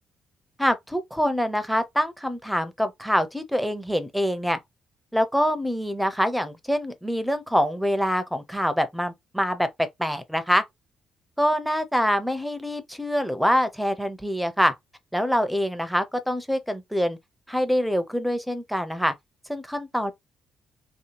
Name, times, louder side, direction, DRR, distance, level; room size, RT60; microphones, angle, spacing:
voice 1, 0.6-4.6 5.1-10.6 11.4-14.7 15.1-17.2 17.5-19.1 19.5-20.1, equal, ahead, 0.7 m, -25 dB
3.1 x 2.8 x 2.9 m
cardioid pair, 90°, 0 cm